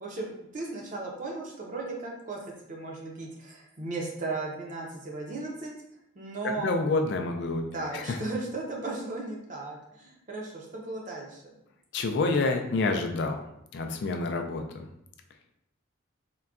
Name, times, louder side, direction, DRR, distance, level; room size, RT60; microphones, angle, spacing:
voice 1, 0.0-2.4 2.7-5.7 6.2-6.7 7.6-11.4, right 2 dB, 40° right, -1 dB, 0.5 m, -36 dB
voice 2, 6.4-7.6 7.9-8.2 11.9-13.4 13.7-14.8, left 3 dB, 55° left, 4 dB, 0.3 m, -28 dB
3.7 x 2.2 x 2.3 m, 0.76 s
head